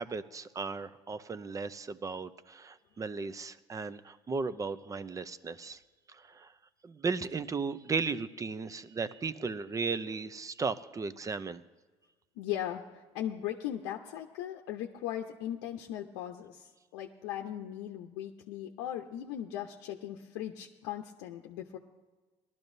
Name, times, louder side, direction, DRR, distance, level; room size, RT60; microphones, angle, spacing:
voice 1, 0.0-5.8 6.1-6.5 6.8-11.6, right 4 dB, 25° right, 15 dB, 0.6 m, -36 dB
voice 2, 12.4-21.8, left 11 dB, 90° left, 2 dB, 0.7 m, -38 dB
18.5 x 12.0 x 2.7 m, 1.3 s
supercardioid pair, 90°, 13 cm